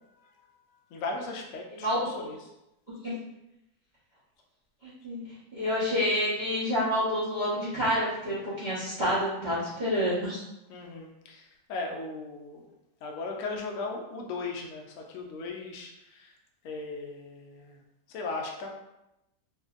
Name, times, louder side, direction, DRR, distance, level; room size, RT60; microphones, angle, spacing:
voice 1, 0.9-2.5 10.7-12.7 13.0-16.3 16.6-17.8 18.1-18.7, left 3 dB, 70° left, 1 dB, 0.8 m, -37 dB
voice 2, 1.8-2.3 3.0-3.1 4.8-5.2 5.5-10.4, equal, 45° right, -12 dB, 0.5 m, -28 dB
2.8 x 2.5 x 2.3 m, 0.90 s
omnidirectional pair, 1.8 m